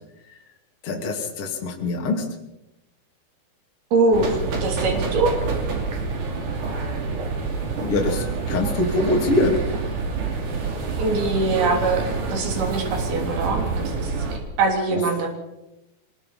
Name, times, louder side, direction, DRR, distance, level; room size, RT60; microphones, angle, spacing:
voice 1, 0.8-2.3 7.8-9.6 14.9-15.0, left 2 dB, 40° left, 0 dB, 3.4 m, -23 dB
voice 2, 3.9-5.4 11.0-13.6 14.0-14.1 14.6-15.3, right 3 dB, 70° right, 2 dB, 5.3 m, -22 dB
sound 1, 4.1-14.4, right 4 dB, 50° right, 4.2 m, -27 dB
24.0 x 21.5 x 5.8 m, 0.93 s
omnidirectional pair, 4.6 m